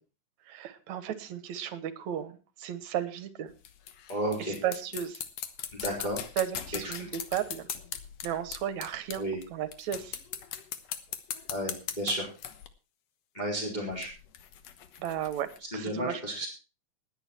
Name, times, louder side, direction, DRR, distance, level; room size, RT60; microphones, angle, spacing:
voice 1, 0.5-3.5 4.6-5.2 6.4-7.6 8.2-9.2 9.5-10.2 15.0-15.5 15.7-16.5, right 10 dB, 65° right, 13 dB, 2.5 m, -34 dB
sound 1, 3.5-9.4 9.7-12.7 13.9-15.6, left 9 dB, 60° left, 2.1 m, -40 dB
voice 2, 4.1-4.6 5.7-6.2 7.0-7.1 9.1-9.4 11.5-12.3 13.3-14.1 15.6-16.5, right 1 dB, 15° left, -2 dB, 4.3 m, -32 dB
19.5 x 9.2 x 4.5 m, 0.33 s
omnidirectional pair, 3.7 m